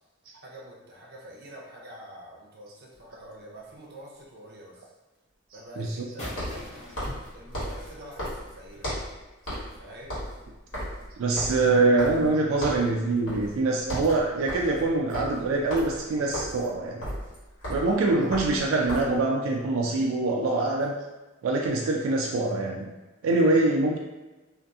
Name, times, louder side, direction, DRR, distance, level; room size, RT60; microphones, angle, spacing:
voice 1, 0.3-4.8 5.5-6.6 7.3-8.9 9.8-10.2, equal, 50° right, -3 dB, 0.6 m, -46 dB
sound 1, 2.9-3.0 6.3-9.2 9.5-9.8 10.0-12.3 12.6-12.9 13.3-13.5 13.8-19.2, equal, 70° left, 1.3 m, -35 dB
voice 2, 5.8-6.1 11.2-17.1 17.7-20.9 21.4-22.9 23.2-24.0, right 2 dB, 90° right, 0 dB, 0.3 m, -24 dB
sound 2, 6.2-8.9, left 1 dB, 35° left, 0.7 m, -42 dB
2.6 x 2.4 x 2.3 m, 1.1 s
head